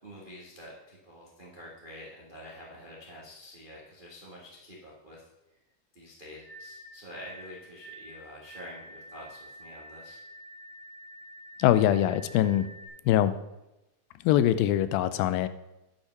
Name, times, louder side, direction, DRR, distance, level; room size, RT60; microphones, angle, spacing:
voice 1, 0.0-5.3 5.9-10.2, left 1 dB, 50° right, -4 dB, 0.6 m, -47 dB
sound 1, 6.4-12.9, equal, 65° left, 3.5 m, -48 dB
voice 2, 11.6-12.7 13.1-13.3 14.2-15.5, left 12 dB, 90° left, 13 dB, 2.4 m, -23 dB
10.5 x 5.7 x 5.8 m, 0.95 s
omnidirectional pair, 4.1 m